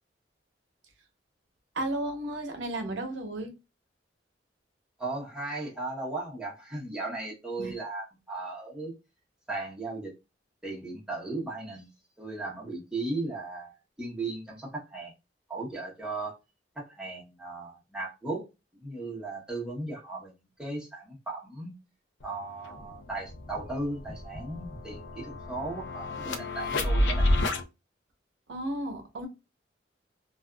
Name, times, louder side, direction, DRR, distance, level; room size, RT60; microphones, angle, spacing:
voice 1, 1.7-3.5 7.6-7.7 28.5-29.3, right 1 dB, 80° right, 0.7 m, -33 dB
voice 2, 5.0-9.0 9.5-10.1 10.6-11.9 12.2-15.1 15.5-16.4 16.7-18.4 18.7-21.7 22.2-27.3, right 2 dB, 5° right, 1.0 m, -36 dB
sound 1, 22.2-22.3 22.6-27.6, left 1 dB, 85° left, 0.5 m, -30 dB
2.5 x 2.4 x 2.2 m
head